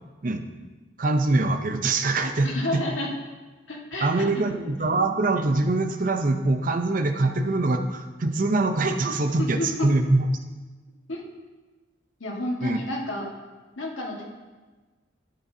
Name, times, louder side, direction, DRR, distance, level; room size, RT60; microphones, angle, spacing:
voice 1, 1.0-2.8 4.0-10.3 12.6-12.8, right 2 dB, 45° right, 7 dB, 0.6 m, -23 dB
voice 2, 2.4-3.1 3.7-4.4 9.4-9.9 11.1-11.2 12.2-13.3 13.8-14.2, left 1 dB, 85° left, -1 dB, 1.6 m, -30 dB
12.0 x 6.9 x 2.7 m, 1.3 s
head